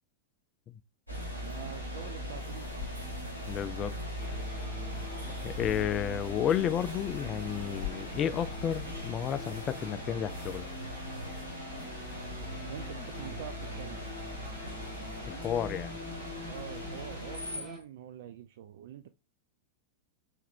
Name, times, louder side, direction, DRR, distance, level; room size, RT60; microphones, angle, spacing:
sound 1, 1.1-17.6, left 1 dB, 85° right, 1.7 m, -39 dB
voice 1, 1.3-3.1 12.7-14.2 16.5-19.1, right 10 dB, 55° right, 0.4 m, -46 dB
voice 2, 3.4-3.9 5.4-10.7 15.3-15.9, left 9 dB, 30° left, 0.3 m, -32 dB
sound 2, 4.2-17.8, left 2 dB, 15° right, 2.2 m, -47 dB
Screech, 8.5-17.9, left 1 dB, 85° left, 0.6 m, -52 dB
4.3 x 4.1 x 2.5 m
figure-of-eight pair, 90°, 0 cm